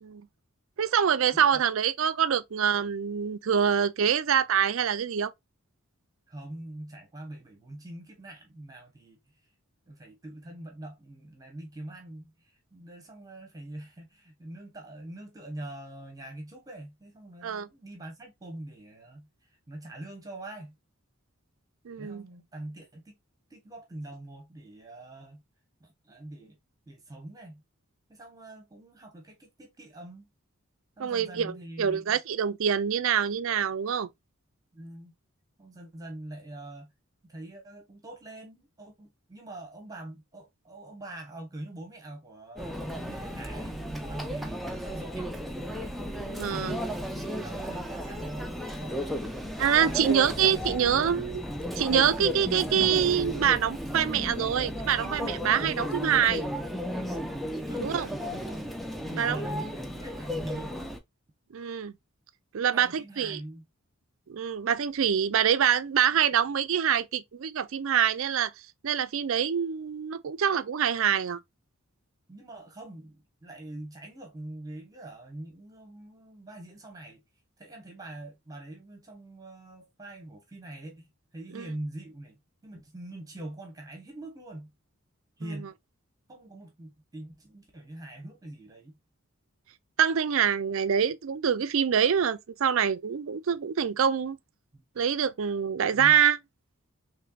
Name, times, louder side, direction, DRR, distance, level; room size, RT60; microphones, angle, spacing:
voice 1, 0.8-5.3 17.4-17.7 21.9-22.2 31.0-31.5 31.8-34.1 46.3-46.8 49.6-51.4 51.8-56.4 57.8-58.1 59.1-59.4 61.5-61.9 62.5-63.4 64.3-68.5 68.8-71.4 81.5-81.7 90.0-94.4 95.0-96.4, right 8 dB, 65° right, 0.4 m, -25 dB
voice 2, 6.3-9.2 9.9-20.8 22.0-23.2 23.5-25.4 25.8-26.6 26.9-27.6 28.1-30.3 31.0-32.2 34.7-35.1 35.6-36.9 37.2-45.4 46.5-46.9 47.2-49.3 49.8-51.0 55.6-55.8 57.7-58.7 59.0-60.8 62.7-63.6 72.3-77.2 77.6-81.1 81.3-84.7 85.4-85.7 86.3-89.0 94.7-94.8 95.9-96.2, right 1 dB, 15° right, 1.1 m, -43 dB
Conversation / Chatter / Crowd, 42.6-61.0, equal, ahead, 0.5 m, -34 dB
4.4 x 3.2 x 2.3 m
head